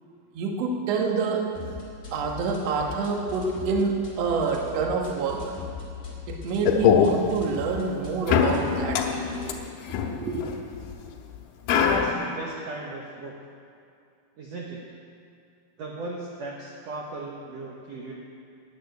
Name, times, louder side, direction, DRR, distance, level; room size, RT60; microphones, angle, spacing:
voice 1, 0.3-1.4 2.1-5.4 6.3-9.5 10.1-10.5, right 4 dB, 60° right, 1 dB, 1.8 m, -27 dB
sound 1, 1.5-9.5, left 4 dB, 25° left, 2.7 m, -40 dB
sound 2, 6.6-7.1 8.3-10.9 11.7-12.1, left 8 dB, 85° left, 2.7 m, -23 dB
voice 2, 11.8-13.3 14.4-14.8 15.8-18.1, right 2 dB, 85° right, -2 dB, 1.4 m, -36 dB
9.5 x 7.7 x 9.4 m, 2.5 s
omnidirectional pair, 4.4 m